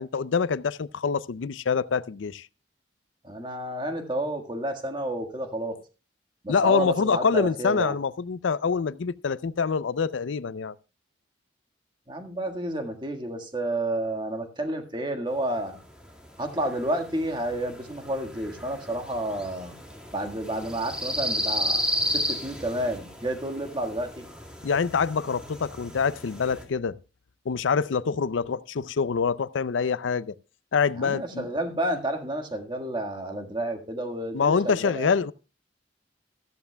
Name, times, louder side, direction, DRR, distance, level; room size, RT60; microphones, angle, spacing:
voice 1, 0.0-2.5 6.5-10.7 24.6-27.0 27.5-30.3 30.7-31.5 34.3-35.3, left 5 dB, 90° left, 0.5 m, -25 dB
voice 2, 3.2-5.8 6.4-8.0 12.1-15.8 16.4-19.7 20.1-21.8 22.1-24.2 30.9-35.1, right 1 dB, 25° right, 1.7 m, -30 dB
sound 1, 15.8-26.6, equal, 5° right, 2.3 m, -33 dB
14.5 x 14.0 x 2.2 m
head